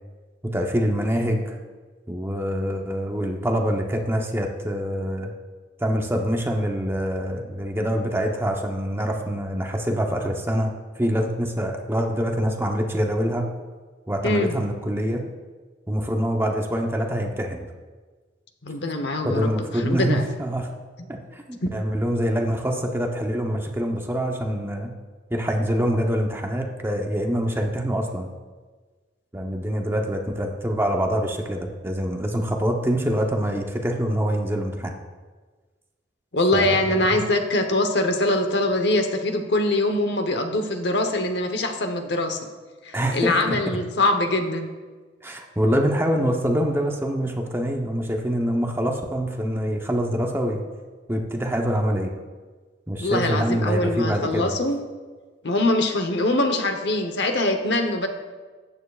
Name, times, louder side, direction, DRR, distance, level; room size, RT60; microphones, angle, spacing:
voice 1, 0.4-1.6 2.1-5.3 5.8-10.7 11.0-13.5 14.1-15.2 15.9-17.6 19.2-20.7 21.1-24.9 25.3-28.3 29.3-34.9 36.5-36.8 42.9-43.6 45.2-50.6 51.1-52.1 52.9-54.5, equal, 15° right, 2 dB, 0.8 m, -25 dB
voice 2, 18.6-20.2 21.6-21.7 36.3-42.4 42.8-44.7 53.0-54.8 55.4-58.1, left 2 dB, 65° left, 6 dB, 0.9 m, -23 dB
14.0 x 8.9 x 2.4 m, 1.4 s
head